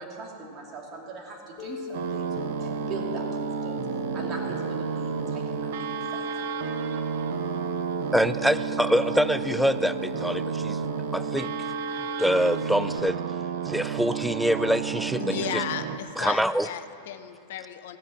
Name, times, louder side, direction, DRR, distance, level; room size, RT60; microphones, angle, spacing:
voice 1, 0.0-6.3, right 3 dB, 35° right, -1 dB, 2.6 m, -40 dB
sound 1, 1.6-13.0, left 4 dB, 40° left, 2.6 m, -37 dB
sound 2, 1.9-16.0, right 9 dB, 70° right, 0.7 m, -32 dB
voice 2, 8.1-10.8 11.1-11.5 12.2-13.2 13.6-15.6 16.2-16.7, equal, ahead, 15 dB, 0.3 m, -25 dB
voice 3, 15.2-18.0, left 10 dB, 75° left, 9 dB, 0.8 m, -34 dB
16.0 x 5.5 x 8.7 m, 2.5 s
supercardioid pair, 130°, 0 cm